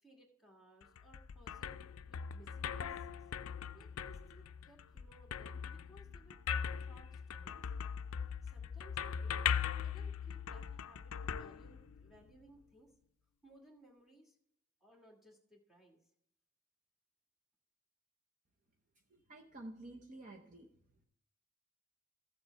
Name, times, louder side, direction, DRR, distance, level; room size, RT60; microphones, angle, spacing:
voice 1, 0.0-3.2 3.7-7.7 8.4-9.5 9.8-12.9 13.4-14.4 14.8-16.0, equal, ahead, -1 dB, 1.6 m, -62 dB
sound 1, 0.8-12.3, left 7 dB, 70° left, 0.4 m, -40 dB
voice 2, 19.1-20.7, right 1 dB, 35° right, 2 dB, 0.8 m, -51 dB
14.5 x 7.2 x 3.3 m, 0.72 s
head